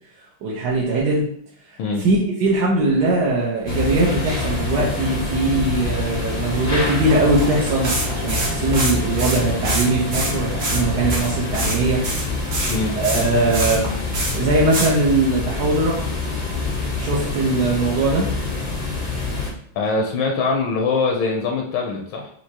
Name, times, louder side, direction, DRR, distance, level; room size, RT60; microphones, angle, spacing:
voice 1, 0.4-1.2 1.7-12.0 13.0-13.9 14.3-16.1 17.0-18.3, right 2 dB, 65° right, -5 dB, 1.3 m, -21 dB
sound 1, 3.7-19.5, left 3 dB, 60° left, 0.4 m, -26 dB
sound 2, 4.0-4.1 4.4-4.5 4.8-4.9 5.5-6.2 6.5-9.9 10.1-10.8 11.1-11.8 12.0-13.8 14.1-14.4 14.7-14.9, right 2 dB, 45° right, 1.2 m, -26 dB
voice 2, 19.7-22.3, left 4 dB, 80° left, 1 dB, 1.4 m, -23 dB
5.9 x 2.7 x 2.8 m, 0.67 s
omnidirectional pair, 2.2 m